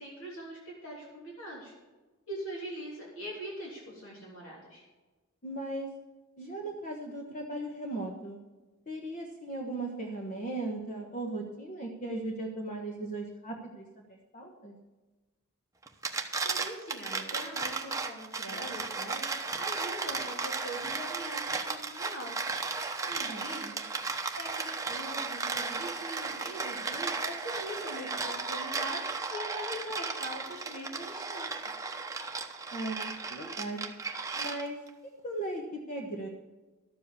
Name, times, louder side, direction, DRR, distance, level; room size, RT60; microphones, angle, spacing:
voice 1, 0.0-1.7 2.3-4.8 16.4-19.2 19.6-22.4 23.0-23.7 24.2-31.6, equal, 65° left, -4 dB, 3.2 m, -42 dB
voice 2, 5.4-5.9 6.4-8.4 8.9-14.8 23.3-23.7 32.7-33.8 34.3-34.8 35.2-36.3, right 2 dB, 40° left, 1 dB, 1.3 m, -37 dB
sound 1, 15.9-34.9, right 4 dB, 15° right, 0.9 m, -35 dB
12.5 x 7.5 x 7.0 m, 1.2 s
head